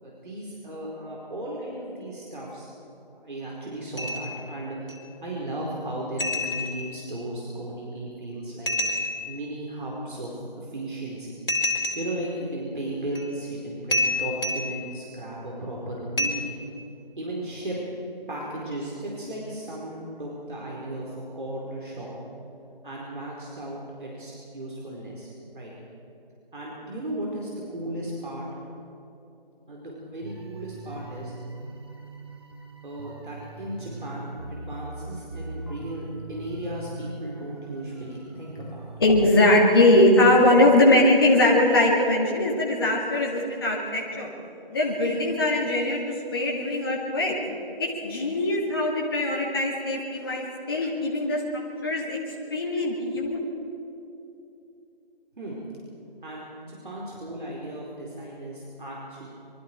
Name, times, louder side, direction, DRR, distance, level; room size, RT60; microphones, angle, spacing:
voice 1, 0.0-2.7 3.1-4.8 5.2-8.7 9.3-11.3 12.0-16.5 17.2-17.8 18.3-22.1 22.8-25.7 26.5-28.5 29.7-31.3 32.8-38.9 55.4-55.6 56.2-59.3, right 1 dB, 60° right, -4 dB, 4.8 m, -35 dB
sound 1, 4.0-4.4 4.9-5.0 6.2-7.0 8.7-9.4 11.5-12.3 13.1-13.3 13.9-14.8 16.2-16.3, left 2 dB, 70° left, 4.0 m, -28 dB
sound 2, 30.2-39.3, right 3 dB, 25° right, 1.4 m, -41 dB
voice 2, 39.0-44.3 44.7-47.3 47.8-52.2 52.5-53.4, left 1 dB, 25° left, -3 dB, 2.6 m, -21 dB
26.0 x 23.5 x 4.8 m, 2.9 s
figure-of-eight pair, 165°, 29 cm